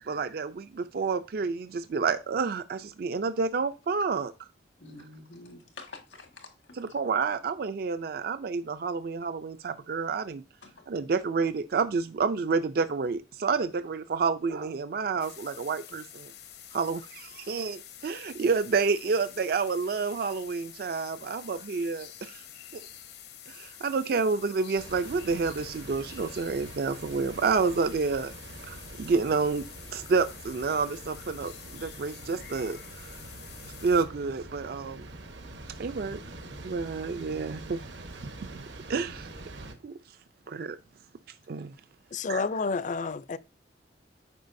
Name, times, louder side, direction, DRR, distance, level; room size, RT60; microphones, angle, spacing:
voice 1, 0.0-4.5 6.8-10.4 10.9-16.3 16.7-22.4 22.7-22.8 23.5-28.3 28.7-29.6 29.9-32.8 33.0-33.2 33.8-35.1 35.8-36.2 36.6-37.8 38.5-38.6 38.9-39.3 39.8-40.0 40.5-40.8 41.5-41.7 42.3-42.4, right 4 dB, 55° right, 0.4 m, -29 dB
voice 2, 4.8-6.8 10.6-10.9, left 3 dB, 85° left, 1.7 m, -48 dB
sound 1, 15.2-34.0, left 10 dB, 60° left, 0.8 m, -48 dB
sound 2, 24.8-39.7, right 2 dB, 75° right, 1.1 m, -45 dB
voice 3, 42.1-43.4, left 4 dB, 45° left, 0.4 m, -30 dB
9.1 x 5.6 x 2.6 m
head